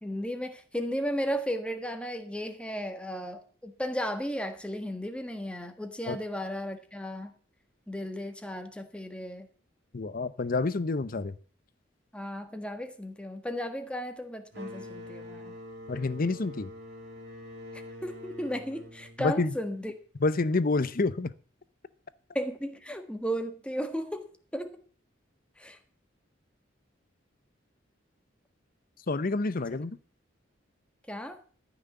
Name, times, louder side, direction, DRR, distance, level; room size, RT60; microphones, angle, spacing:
voice 1, 0.0-7.3 7.9-9.5 12.1-15.5 18.0-19.9 22.3-24.3 24.5-24.8 25.6-25.8 31.1-31.4, equal, 5° left, 1.4 m, -34 dB
voice 2, 9.9-11.4 15.9-16.7 19.2-19.6 20.2-21.3 29.1-30.0, left 3 dB, 45° left, 0.7 m, -28 dB
sound 1, 14.5-20.0, left 1 dB, 60° right, 3.7 m, -45 dB
13.5 x 6.2 x 8.2 m
head